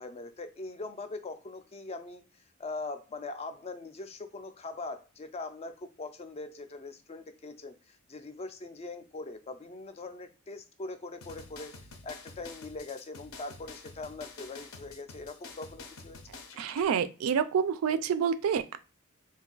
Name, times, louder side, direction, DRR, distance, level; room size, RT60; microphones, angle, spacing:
voice 1, 0.0-16.2, left 3 dB, 30° left, 0.3 m, -42 dB
sound 1, 11.2-16.8, left 3 dB, 70° left, 0.6 m, -48 dB
voice 2, 16.6-18.8, right 7 dB, 75° right, 0.3 m, -28 dB
2.6 x 2.2 x 3.8 m
head